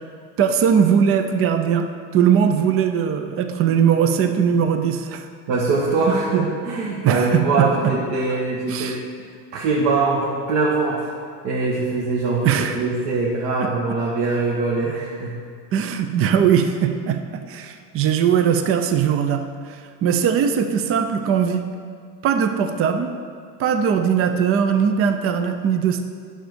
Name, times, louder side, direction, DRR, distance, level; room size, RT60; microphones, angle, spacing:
voice 1, 0.4-1.9 2.1-5.3 7.0-7.7 8.7-9.0 12.4-12.8 13.6-13.7 15.7-21.7 22.2-23.1 23.6-26.0, right 7 dB, 35° right, 7 dB, 0.6 m, -20 dB
voice 2, 5.5-9.0 9.5-11.1 11.4-15.3, right 3 dB, 55° right, -4 dB, 1.6 m, -22 dB
8.9 x 6.4 x 5.2 m, 2.1 s
supercardioid pair, 120°, 39 cm